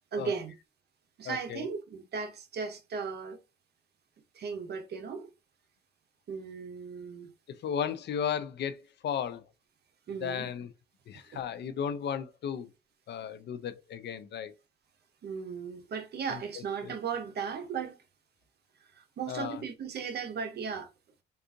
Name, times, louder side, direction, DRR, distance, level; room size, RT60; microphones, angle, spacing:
voice 1, 0.1-0.5 1.2-3.4 4.3-5.3 6.3-7.3 10.1-10.5 11.3-11.4 15.2-18.0 18.9-20.9, right 6 dB, 55° right, 0.7 m, -36 dB
voice 2, 1.3-1.6 7.6-8.8 9.0-9.4 10.2-10.7 11.1-12.7 13.1-14.5 19.3-19.6, left 8 dB, 60° left, 0.5 m, -34 dB
3.7 x 2.4 x 2.5 m
cardioid pair, 90°, 20 cm